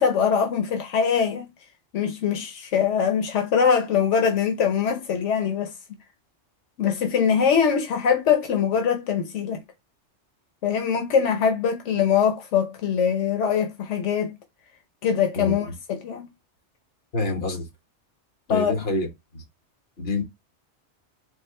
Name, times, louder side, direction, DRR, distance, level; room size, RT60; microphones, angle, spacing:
voice 1, 0.0-1.5 1.9-5.7 6.8-9.6 10.6-14.3 15.0-16.3 18.5-18.7, left 7 dB, 90° left, 1.1 m, -22 dB
voice 2, 17.1-17.7 18.5-19.4 20.0-20.2, left 2 dB, 60° left, 1.6 m, -27 dB
4.4 x 2.5 x 4.2 m
omnidirectional pair, 1.2 m